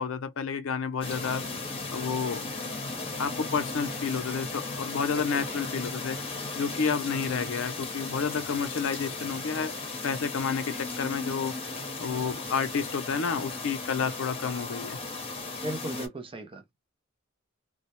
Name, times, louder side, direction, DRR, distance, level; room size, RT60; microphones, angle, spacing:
voice 1, 0.0-1.5 1.9-2.5 3.2-6.2 6.5-11.5 12.0-15.0, left 6 dB, 75° left, 0.5 m, -30 dB
sound 1, 1.0-16.1, left 3 dB, 30° left, 0.8 m, -36 dB
voice 2, 5.2-5.6 15.6-16.8, right 1 dB, 25° right, 0.5 m, -38 dB
2.2 x 2.0 x 2.8 m
head